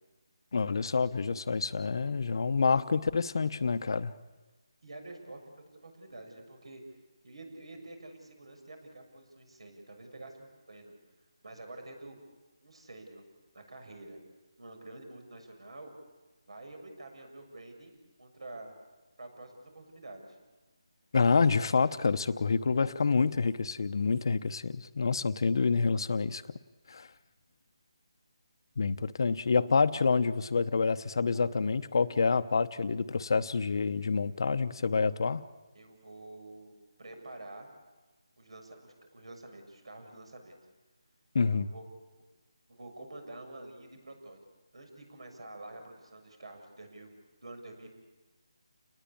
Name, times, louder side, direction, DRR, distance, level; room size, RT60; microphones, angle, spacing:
voice 1, 0.5-4.1 21.1-26.4 26.9-27.1 28.8-35.4 41.3-41.7, left 4 dB, 50° left, 12 dB, 0.9 m, -27 dB
voice 2, 4.8-6.8 7.2-11.0 11.4-12.2 12.6-13.3 13.5-14.2 14.6-15.9 16.5-18.7 19.2-20.4 35.7-37.7 38.4-40.6 41.5-41.9 42.1-42.2 42.7-44.4 44.7-47.1 47.4-47.9, right 2 dB, 75° right, 5 dB, 7.0 m, -48 dB
29.5 x 20.0 x 8.7 m, 1.2 s
figure-of-eight pair, 170°, 3 cm